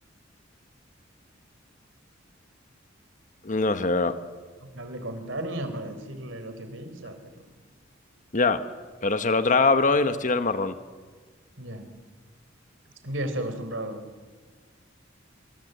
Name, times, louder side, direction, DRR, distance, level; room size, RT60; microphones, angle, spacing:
voice 1, 3.4-4.2 8.3-8.6 9.0-10.7, left 3 dB, 40° left, 10 dB, 1.2 m, -22 dB
voice 2, 4.6-7.2 11.6-11.9 13.0-14.0, right 1 dB, 70° right, 8 dB, 4.0 m, -34 dB
27.0 x 25.0 x 8.1 m, 1.5 s
head